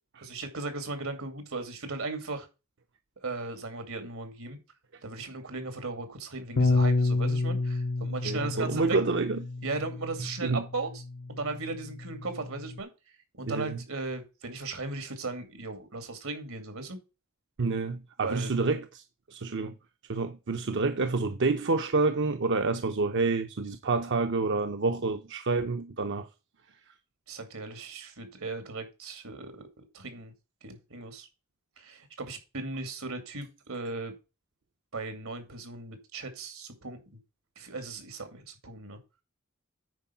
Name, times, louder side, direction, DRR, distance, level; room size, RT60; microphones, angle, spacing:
voice 1, 0.2-2.5 3.2-4.6 5.0-9.0 9.6-11.0 11.3-12.9 13.4-17.0 18.2-18.5 27.3-30.3 30.6-31.3 31.8-34.1 34.9-37.2 37.6-39.0, right 3 dB, 85° right, 2.5 m, -37 dB
Bass guitar, 6.6-12.8, left 3 dB, 50° left, 0.5 m, -30 dB
voice 2, 8.2-9.4 10.4-10.6 13.5-13.8 17.6-19.0 19.3-19.7 20.1-26.3, right 3 dB, 60° right, 0.7 m, -28 dB
9.5 x 4.6 x 5.7 m
head